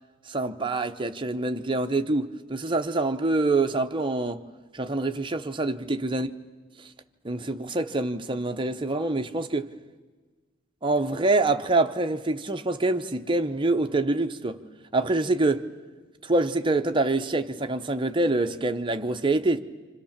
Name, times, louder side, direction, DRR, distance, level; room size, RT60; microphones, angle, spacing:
voice 1, 0.3-4.4 4.7-6.3 7.2-9.7 10.8-14.6 14.9-15.7 16.2-19.6, right 2 dB, 25° right, 0.8 m, -25 dB
28.5 x 26.0 x 7.3 m
head